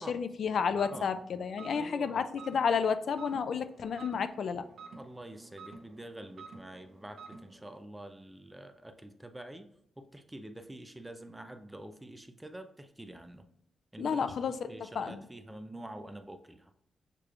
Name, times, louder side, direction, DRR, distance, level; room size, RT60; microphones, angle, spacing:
voice 1, 0.0-4.6 14.0-14.7 15.0-15.2, left 6 dB, 65° left, 11 dB, 0.4 m, -31 dB
sound 1, 0.5-7.8, right 4 dB, 70° right, 1.0 m, -51 dB
voice 2, 1.7-2.3 4.9-9.7 10.0-13.4 13.9-14.4 14.7-16.7, right 1 dB, 10° right, 8 dB, 0.5 m, -47 dB
6.6 x 3.0 x 2.4 m, 0.74 s
cardioid pair, 95°, 0 cm